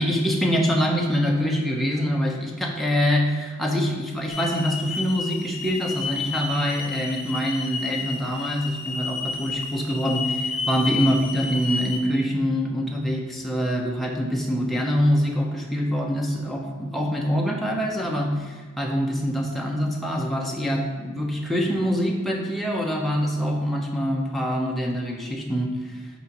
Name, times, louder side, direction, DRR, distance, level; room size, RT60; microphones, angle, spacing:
voice 1, 0.0-26.1, equal, ahead, -2 dB, 0.7 m, -25 dB
Hiss / Alarm, 4.3-12.0, left 4 dB, 30° left, 1.0 m, -31 dB
9.6 x 4.3 x 2.9 m, 1.5 s
head